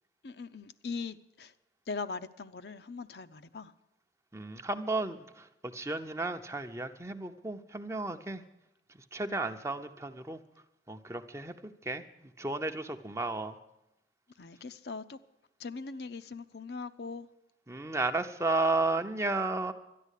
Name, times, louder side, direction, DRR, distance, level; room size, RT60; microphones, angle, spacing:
voice 1, 0.2-1.5 1.9-3.7 14.4-15.2 15.6-17.3, left 4 dB, 65° left, 0.6 m, -40 dB
voice 2, 4.3-8.4 9.1-10.4 10.9-11.5 11.8-12.0 12.4-13.6 17.7-19.7, right 2 dB, 15° right, 0.6 m, -33 dB
12.5 x 10.5 x 8.2 m
head